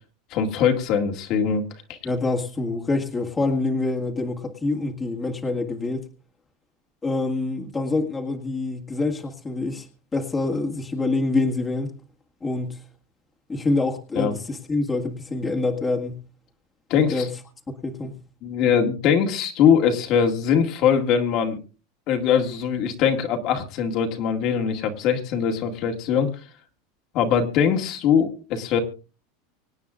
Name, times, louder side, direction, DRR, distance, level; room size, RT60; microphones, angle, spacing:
voice 1, 0.3-1.6 1.9-2.0 14.2-14.4 16.9-17.3 18.4-21.6 22.1-26.3 27.1-28.8, left 7 dB, 45° left, 3 dB, 2.0 m, -21 dB
voice 2, 2.0-6.1 7.0-11.9 12.4-12.8 13.5-16.2 17.0-17.3 17.7-18.2, left 2 dB, 15° left, 1 dB, 1.9 m, -26 dB
25.0 x 9.2 x 2.5 m, 0.34 s
supercardioid pair, 150°, 0 cm